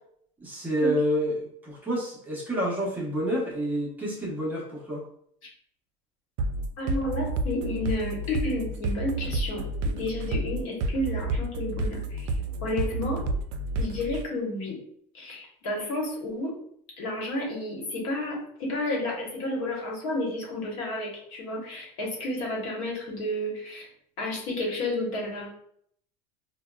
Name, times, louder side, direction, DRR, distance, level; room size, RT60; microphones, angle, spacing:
voice 1, 0.4-5.0, equal, 10° right, -4 dB, 0.8 m, -28 dB
sound 1, 6.4-14.2, right 2 dB, 85° right, 0.4 m, -30 dB
voice 2, 6.8-12.3 12.6-13.3 13.8-14.8 15.1-16.5 17.0-23.9 24.2-25.5, left 1 dB, 80° left, -2 dB, 1.1 m, -31 dB
3.9 x 2.2 x 2.3 m, 0.66 s
cardioid pair, 145°, 16 cm